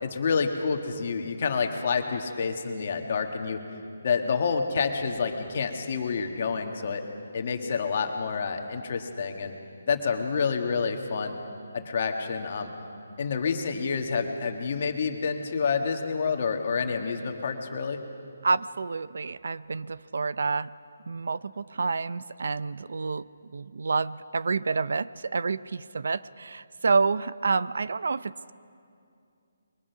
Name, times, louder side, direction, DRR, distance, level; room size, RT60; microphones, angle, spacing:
voice 1, 0.0-3.6 4.0-7.0 7.3-9.5 9.9-11.4 11.7-12.7 13.2-18.0, left 5 dB, 35° left, 4 dB, 1.7 m, -28 dB
voice 2, 18.4-20.7 21.1-23.3 23.5-28.5, right 4 dB, 60° right, 17 dB, 0.5 m, -28 dB
28.0 x 22.5 x 5.9 m, 2.4 s
hypercardioid pair, 175°, 0 cm